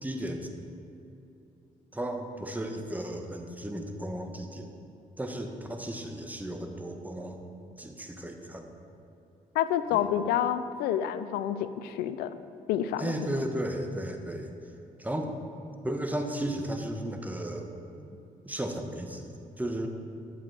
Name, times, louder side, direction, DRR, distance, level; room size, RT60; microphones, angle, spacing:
voice 1, 0.0-0.5 1.9-4.7 5.2-7.4 7.8-8.7 9.9-10.0 13.0-14.5 15.0-15.3 15.8-17.7 18.0-18.2 18.4-19.9, right 1 dB, 10° right, 4 dB, 1.3 m, -34 dB
voice 2, 9.5-12.4 12.7-13.1, left 10 dB, 80° left, 12 dB, 0.5 m, -28 dB
11.0 x 7.0 x 4.9 m, 2.9 s
supercardioid pair, 55°, 16 cm